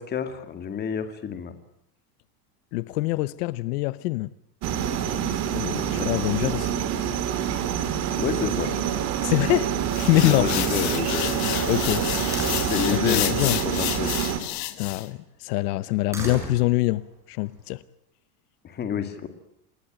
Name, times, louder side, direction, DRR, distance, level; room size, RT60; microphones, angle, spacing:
voice 1, 0.0-1.5 5.9-6.1 8.2-8.7 10.2-11.6 12.6-14.1 18.6-19.3, left 7 dB, 20° left, 2.2 m, -29 dB
voice 2, 2.7-4.3 5.5-6.7 9.2-9.7 10.1-10.5 11.7-12.1 12.9-13.6 14.8-17.0 17.3-17.8, left 19 dB, 75° left, 0.9 m, -24 dB
sound 1, 4.6-14.4, right 9 dB, 35° right, 2.7 m, -27 dB
sound 2, 9.9-15.1, left 16 dB, 35° left, 1.5 m, -30 dB
Slam, 10.4-12.9 13.9-14.4 15.9-17.0, right 1 dB, 5° right, 7.0 m, -37 dB
28.0 x 20.5 x 9.0 m
cardioid pair, 175°, 46 cm